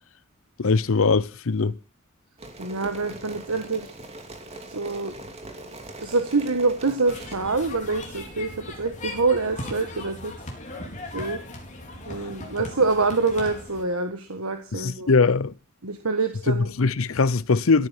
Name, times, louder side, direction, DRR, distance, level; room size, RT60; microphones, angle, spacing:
voice 1, 0.6-1.7 14.7-15.5 16.5-17.9, left 4 dB, 70° left, 0.7 m, -21 dB
sound 1, 2.4-7.4, right 1 dB, 30° right, 2.8 m, -41 dB
voice 2, 2.6-3.9 4.7-5.1 6.0-10.3 11.1-11.4 12.0-15.1 15.8-16.7, right 3 dB, 85° right, 1.5 m, -26 dB
sound 2, 7.1-13.8, left 2 dB, 35° left, 4.3 m, -38 dB
16.0 x 9.7 x 6.2 m
head